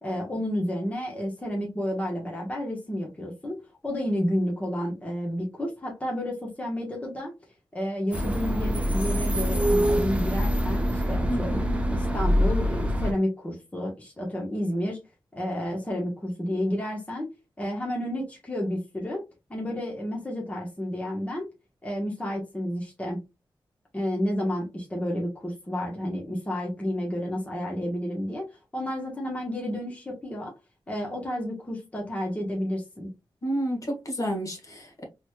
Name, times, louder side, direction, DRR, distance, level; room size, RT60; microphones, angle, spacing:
voice 1, 0.0-7.3 7.7-11.6 11.9-15.0 15.3-17.3 17.6-19.2 19.5-21.5 21.8-23.2 23.9-30.5 30.9-33.1, equal, 15° left, 1.1 m, -31 dB
sound 1, 8.1-13.1, equal, 15° right, 0.8 m, -25 dB
voice 2, 11.3-11.8 33.4-35.0, equal, 40° left, 1.5 m, -31 dB
4.0 x 3.2 x 2.3 m
wide cardioid pair, 110°, 9 cm